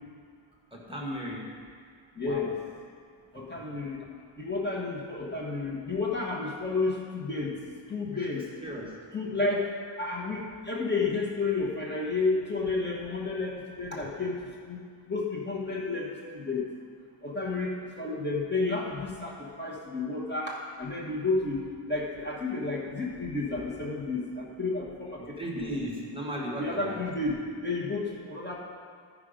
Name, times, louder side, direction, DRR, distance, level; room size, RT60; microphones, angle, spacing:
voice 1, 0.7-1.6 2.2-2.5 8.6-8.9 25.4-27.0, equal, 10° right, -3 dB, 1.2 m, -35 dB
voice 2, 2.2-2.6 3.3-4.0 4.4-7.6 7.9-8.4 9.1-14.4 14.6-14.8 15.1-16.7 17.2-25.7 26.6-28.6, left 3 dB, 20° left, -4 dB, 1.2 m, -31 dB
13.5 x 5.0 x 5.0 m, 2.1 s
wide cardioid pair, 150°, 47 cm